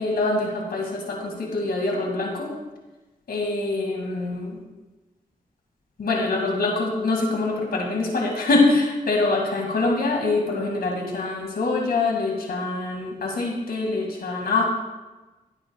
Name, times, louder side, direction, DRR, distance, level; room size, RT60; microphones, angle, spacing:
voice 1, 0.0-2.5 3.3-4.6 6.0-14.6, left 3 dB, 85° left, 1 dB, 2.1 m, -24 dB
15.0 x 9.8 x 2.3 m, 1.1 s
wide cardioid pair, 80°, 15 cm